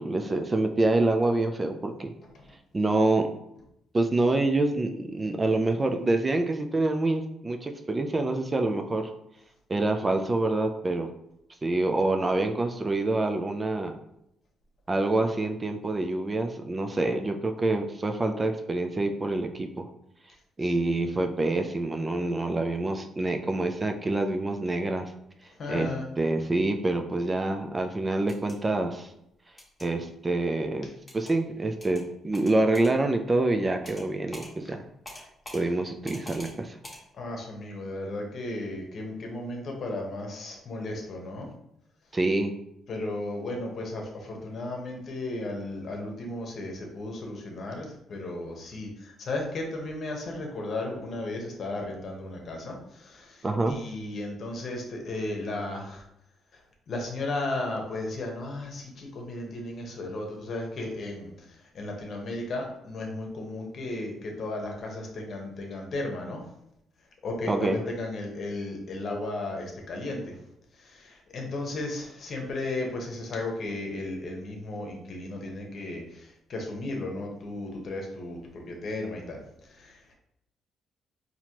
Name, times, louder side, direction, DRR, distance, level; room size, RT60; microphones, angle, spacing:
voice 1, 0.0-2.1 2.7-3.3 3.9-9.1 9.7-11.1 11.6-13.9 14.9-19.9 20.6-25.1 25.7-25.9 26.2-29.1 29.8-30.9 31.1-34.8 35.5-36.8 42.1-42.5 53.4-53.8 67.5-67.8, right 2 dB, 25° right, 5 dB, 0.4 m, -26 dB
voice 2, 20.6-21.1 25.5-26.0 37.1-41.5 42.9-56.0 56.5-56.6 56.9-66.4 67.2-70.4 70.7-80.2, left 2 dB, 55° left, 1 dB, 1.0 m, -35 dB
sound 1, 28.2-28.6 29.6-29.9 31.1-31.3 31.8-32.0 32.3-32.9 33.8-34.1 34.3-34.5 35.0-35.6 36.0-36.5 36.8-37.0, left 1 dB, 10° left, 1.2 m, -44 dB
4.2 x 2.8 x 2.9 m, 0.79 s
cardioid pair, 90°, 0 cm